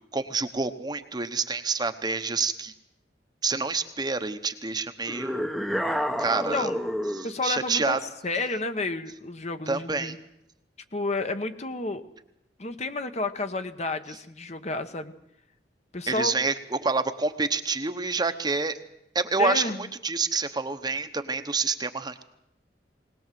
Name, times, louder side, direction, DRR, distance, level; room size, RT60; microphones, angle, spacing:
voice 1, 0.1-2.7 3.4-5.5 6.2-6.7 7.1-8.0 9.7-10.1 16.1-16.5 16.8-18.7 19.1-22.2, right 4 dB, 25° right, 8 dB, 1.0 m, -28 dB
sound 1, 5.1-7.4, equal, ahead, 0.9 m, -29 dB
voice 2, 7.2-8.0 8.2-10.2 10.9-12.0 12.6-15.1 15.9-16.3 19.4-19.8, left 2 dB, 40° left, 8 dB, 1.1 m, -30 dB
20.5 x 19.5 x 7.7 m, 0.82 s
head